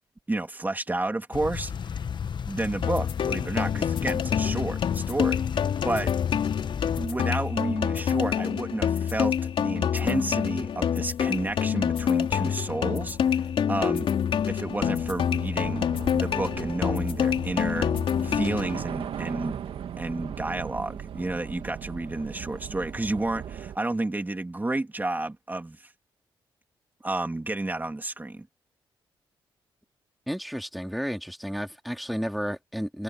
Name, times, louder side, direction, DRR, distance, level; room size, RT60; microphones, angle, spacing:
voice 1, 0.3-1.7 2.5-5.4 5.8-6.1 7.0-14.1 14.5-15.9 16.1-17.9 18.2-19.6 20.0-25.9 27.0-28.5, right 2 dB, 20° right, 2.3 m, -31 dB
sound 1, 1.3-7.1, left 7 dB, 55° left, 1.1 m, -33 dB
sound 2, 2.8-18.8, left 8 dB, 70° left, 3.3 m, -27 dB
Train / Subway metro underground, 12.7-23.8, right 9 dB, 75° right, 2.1 m, -39 dB
voice 2, 30.3-33.0, equal, ahead, 3.0 m, -32 dB
cardioid pair, 65°, 9 cm